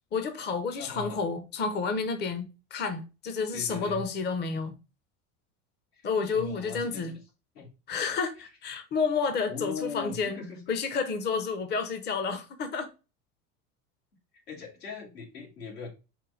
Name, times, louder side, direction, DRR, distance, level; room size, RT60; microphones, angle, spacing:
voice 1, 0.1-4.7 6.0-7.1 7.9-10.4 10.7-12.9, left 5 dB, 25° left, 0.6 m, -30 dB
voice 2, 0.8-1.2 3.5-4.1 5.9-6.1 6.3-7.2 7.5-7.7 9.5-10.6 14.5-15.9, left 5 dB, 85° left, 2.2 m, -39 dB
4.6 x 2.3 x 4.8 m
hypercardioid pair, 80°, 45 cm